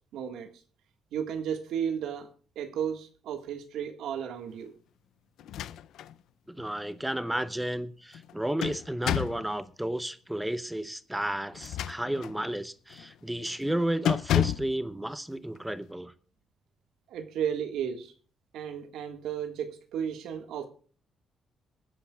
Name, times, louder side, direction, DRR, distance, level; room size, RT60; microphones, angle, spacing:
voice 1, 0.1-0.5 1.1-2.3 2.5-4.7 17.1-18.1 18.5-20.7, right 8 dB, 85° right, 1.6 m, -33 dB
sound 1, 5.4-6.1 6.6-6.7 8.1-9.5 11.5-12.4 12.9-13.1 13.5-13.7 14.1-14.8, left 10 dB, 80° left, 0.4 m, -30 dB
voice 2, 6.5-16.1, right 1 dB, 5° right, 0.6 m, -32 dB
23.5 x 10.0 x 2.3 m
cardioid pair, 130°, 0 cm